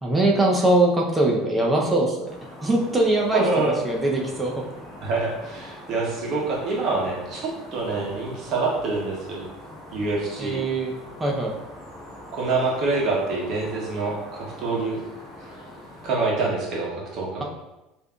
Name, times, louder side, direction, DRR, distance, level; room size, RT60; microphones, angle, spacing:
voice 1, 0.0-2.2 2.6-3.4 3.8-4.6 10.4-10.9 11.2-11.5, right 2 dB, 10° right, -1 dB, 0.6 m, -21 dB
sound 1, 2.2-16.1, left 1 dB, 15° left, 1.0 m, -43 dB
voice 2, 3.3-3.7 5.0-9.5 9.9-10.6 12.3-15.0 16.0-17.4, right 3 dB, 45° right, -3 dB, 0.8 m, -26 dB
5.1 x 2.5 x 2.3 m, 0.97 s
cardioid pair, 155°, 0 cm